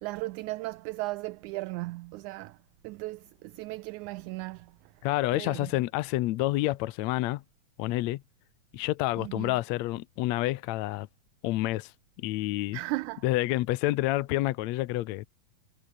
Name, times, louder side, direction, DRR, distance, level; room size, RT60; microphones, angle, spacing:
voice 1, 0.0-2.6 2.8-4.8 5.3-5.7 9.2-9.5 12.7-13.2, right 21 dB, 80° right, 1.8 m, -36 dB
voice 2, 5.0-7.4 7.8-8.2 8.7-11.1 11.4-11.9 12.2-12.8 13.2-15.3, left 17 dB, 75° left, 1.7 m, -28 dB
omnidirectional pair, 3.8 m